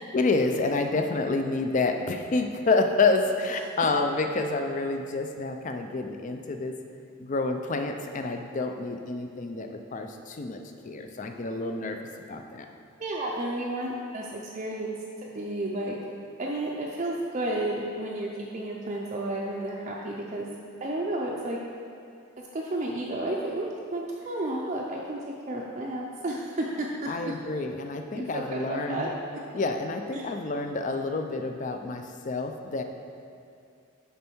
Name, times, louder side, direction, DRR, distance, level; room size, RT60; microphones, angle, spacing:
voice 1, 0.1-6.7 7.2-12.0 12.3-12.7 27.1-29.0 29.5-32.8, left 3 dB, 35° left, 5 dB, 0.4 m, -28 dB
voice 2, 13.0-14.9 15.2-16.0 16.4-20.5 20.8-21.6 22.5-27.1 28.1-29.1 30.1-30.3, right 1 dB, 35° right, -3 dB, 0.5 m, -32 dB
6.8 x 5.3 x 4.5 m, 2.5 s
head